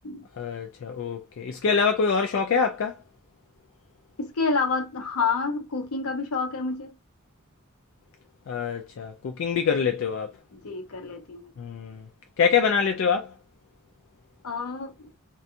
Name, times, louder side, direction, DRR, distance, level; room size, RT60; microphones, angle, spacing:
voice 1, 0.4-3.0 8.5-10.3 11.6-12.1 12.4-13.3, left 6 dB, 60° left, 0.3 m, -25 dB
voice 2, 4.2-6.9 10.5-11.5 14.4-15.1, left 4 dB, 80° left, 0.7 m, -28 dB
2.7 x 2.3 x 2.5 m
head